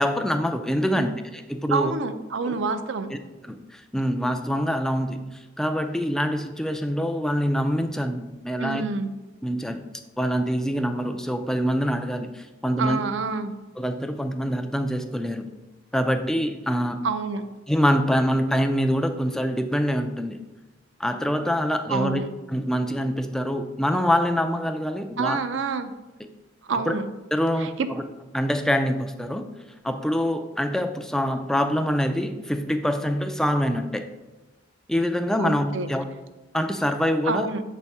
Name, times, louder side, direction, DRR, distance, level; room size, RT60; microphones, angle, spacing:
voice 1, 0.0-1.9 2.5-2.6 3.1-3.2 3.5-8.8 9.4-9.8 10.2-13.0 13.8-15.5 15.9-17.0 17.7-20.4 21.0-22.2 22.5-25.4 26.9-27.0 27.3-28.0 28.3-29.5 29.8-34.1 34.9-36.0 36.5-37.5, equal, 5° left, 6 dB, 0.3 m, -25 dB
voice 2, 1.7-3.1 8.6-9.1 12.8-13.5 17.0-17.4 21.9-22.3 25.2-25.9 26.7-27.1 27.6-27.9 35.4-35.9 37.2-37.6, right 4 dB, 65° right, 10 dB, 0.4 m, -27 dB
6.7 x 4.1 x 3.5 m, 1.1 s
head